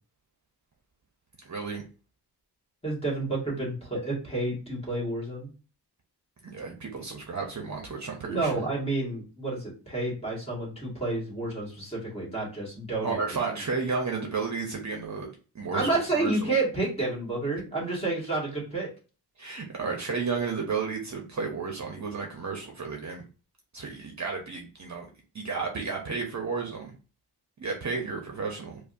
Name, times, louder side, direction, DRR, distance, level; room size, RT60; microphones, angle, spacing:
voice 1, 1.5-1.8 6.4-8.7 13.0-16.5 19.4-23.2 23.7-25.1 25.3-26.9 27.6-28.8, right 4 dB, 45° right, 1 dB, 0.7 m, -32 dB
voice 2, 2.8-5.5 8.3-13.2 15.7-18.9, right 2 dB, 15° left, -3 dB, 1.8 m, -30 dB
5.1 x 2.2 x 2.6 m, 0.35 s
wide cardioid pair, 115°, 40 cm